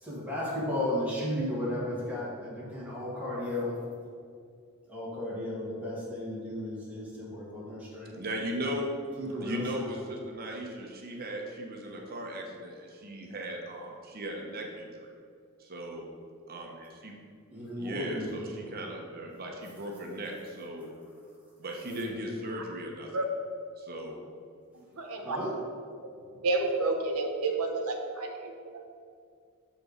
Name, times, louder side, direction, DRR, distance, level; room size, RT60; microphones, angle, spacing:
voice 1, 0.0-3.8 4.9-8.1 9.2-9.9 17.5-18.4 21.9-22.3 25.2-25.5, left 1 dB, 5° right, -7 dB, 1.9 m, -34 dB
voice 2, 8.2-8.9 9.4-14.9 15.6-16.0 16.5-17.1 17.8-20.9 21.6-23.1 23.8-24.2, equal, 40° right, 1 dB, 0.9 m, -37 dB
voice 3, 25.0-25.4 26.4-28.8, right 3 dB, 85° right, 3 dB, 1.0 m, -30 dB
6.9 x 4.5 x 5.2 m, 2.3 s
head